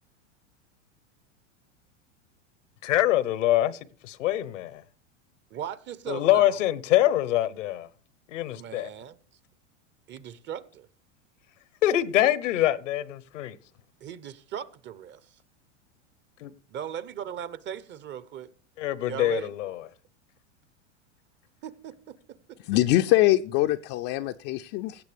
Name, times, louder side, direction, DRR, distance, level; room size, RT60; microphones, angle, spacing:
voice 1, 2.8-4.8 6.1-7.9 8.3-8.9 11.8-13.6 16.4-16.5 18.8-19.8, left 13 dB, 80° left, 1.0 m, -24 dB
voice 2, 5.5-6.6 8.5-9.2 10.1-10.9 14.0-15.3 16.7-18.5 19.0-19.5 21.6-22.2 22.5-22.6, right 9 dB, 30° right, 0.8 m, -38 dB
voice 3, 22.7-25.0, left 16 dB, 45° left, 0.5 m, -23 dB
16.5 x 8.1 x 3.4 m
hypercardioid pair, 115°, 36 cm